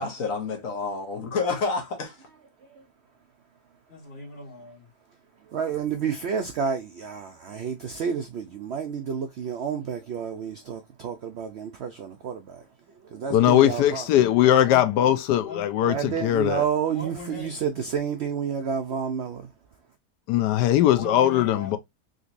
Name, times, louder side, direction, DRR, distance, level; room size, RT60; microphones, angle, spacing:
voice 1, 0.0-2.1, left 4 dB, 60° left, 1.3 m, -29 dB
voice 2, 3.9-4.9 14.4-14.8 15.4-15.9 16.9-17.6 20.9-21.8, left 2 dB, 35° left, 1.5 m, -40 dB
voice 3, 5.5-14.1 15.9-19.5, right 7 dB, 80° right, 0.6 m, -30 dB
voice 4, 13.3-16.6 20.3-21.8, left 12 dB, 90° left, 1.2 m, -20 dB
3.8 x 3.0 x 2.5 m
omnidirectional pair, 1.7 m